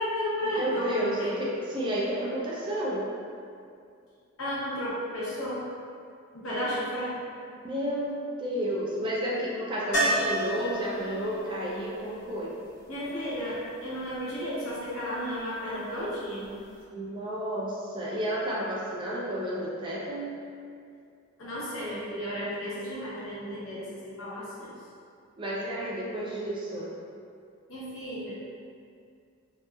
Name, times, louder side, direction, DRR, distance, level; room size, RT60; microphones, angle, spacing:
voice 1, 0.0-1.4 4.4-5.6 6.3-7.2 12.9-16.5 21.4-24.7 27.7-28.4, equal, 85° left, -8 dB, 0.7 m, -33 dB
voice 2, 0.5-3.0 7.6-12.5 16.9-20.4 25.4-26.9, right 1 dB, 25° right, -6 dB, 0.4 m, -31 dB
sound 1, 9.9-13.8 16.5-16.6 16.8-16.9, right 1 dB, 60° left, 0.9 m, -32 dB
2.9 x 2.0 x 2.3 m, 2.4 s
head